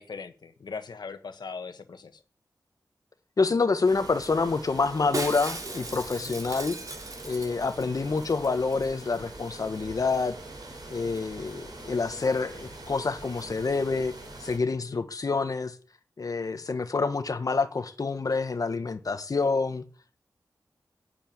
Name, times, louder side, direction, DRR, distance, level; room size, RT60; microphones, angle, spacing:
voice 1, 0.0-2.2 6.2-6.3 14.8-15.0, left 5 dB, 80° left, 1.5 m, -40 dB
voice 2, 3.4-6.8 7.2-10.3 10.9-14.1 14.4-15.7 16.2-19.8, left 4 dB, 55° left, 1.3 m, -27 dB
sound 1, 3.8-14.6, right 2 dB, 70° right, 3.6 m, -44 dB
Shatter, 5.1-7.9 8.2-8.3 8.4-8.9 9.1-9.2, right 2 dB, 55° right, 2.5 m, -37 dB
9.1 x 7.1 x 8.7 m
wide cardioid pair, 105°, 7 cm